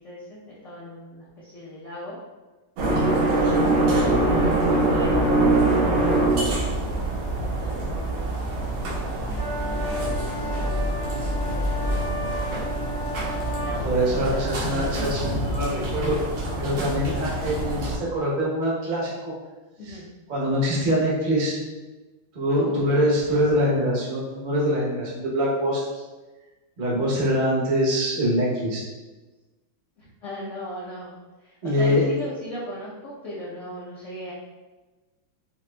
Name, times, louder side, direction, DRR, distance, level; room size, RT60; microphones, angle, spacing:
voice 1, 0.0-2.2 2.9-5.6 6.2-8.9 10.3-12.1 13.5-14.7 15.0-15.4 19.8-20.1 22.6-23.0 30.0-34.3, equal, 70° left, -7 dB, 0.7 m, -38 dB
sound 1, 2.8-18.0, right 2 dB, 85° right, 1.6 m, -24 dB
sound 2, 9.3-13.8, left 1 dB, 85° left, 1.6 m, -33 dB
voice 2, 13.7-15.7 15.9-16.2 16.6-19.3 19.9-20.0 20.3-21.6 22.3-25.8 26.8-28.8 31.6-32.1, equal, 50° right, -5 dB, 0.5 m, -24 dB
5.7 x 2.5 x 2.2 m, 1.2 s
omnidirectional pair, 2.2 m